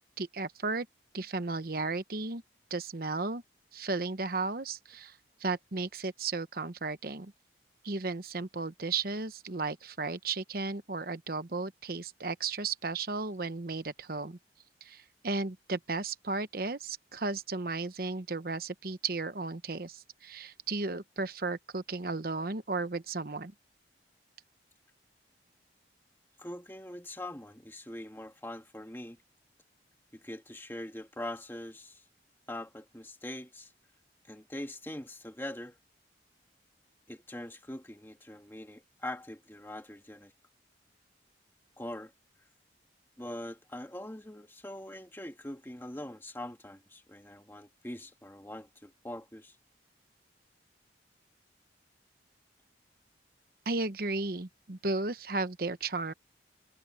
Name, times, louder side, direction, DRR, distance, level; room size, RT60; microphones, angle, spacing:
voice 1, 0.2-0.9 1.1-2.4 2.7-3.4 3.7-7.3 7.8-14.4 14.8-23.5 53.7-56.1, right 3 dB, 55° right, 1.0 m, -34 dB
voice 2, 26.4-29.2 30.1-32.0 32.5-33.7 34.3-35.8 37.1-40.3 41.8-42.1 43.2-49.6, left 1 dB, 10° left, 1.9 m, -43 dB
head